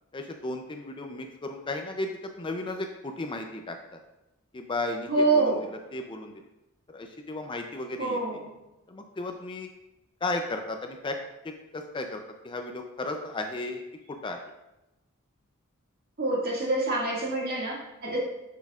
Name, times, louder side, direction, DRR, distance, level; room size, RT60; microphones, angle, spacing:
voice 1, 0.1-4.0 4.5-6.4 6.9-8.2 8.9-9.7 10.2-11.2 11.4-13.8 14.1-14.4 18.0-18.2, left 2 dB, 25° left, 5 dB, 0.4 m, -35 dB
voice 2, 5.1-5.6 8.0-8.5 16.2-18.2, right 2 dB, 45° right, -3 dB, 2.0 m, -26 dB
7.5 x 7.0 x 2.4 m, 0.96 s
head